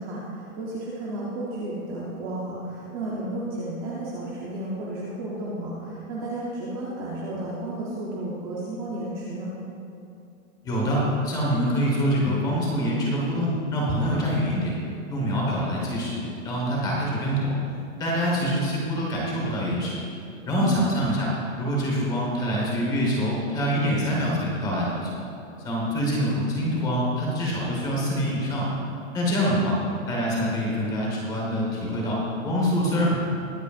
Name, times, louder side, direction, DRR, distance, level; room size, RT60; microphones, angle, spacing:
voice 1, 0.0-9.5 20.6-20.9 29.3-29.6, right 1 dB, 15° right, -7 dB, 0.8 m, -32 dB
voice 2, 10.6-14.7 15.1-17.6 18.0-20.0 20.5-21.3 21.6-25.1 25.6-28.7 29.1-29.7 30.1-33.2, equal, 10° left, -3 dB, 1.2 m, -25 dB
21.5 x 8.0 x 2.5 m, 2.6 s
hypercardioid pair, 175°, 41 cm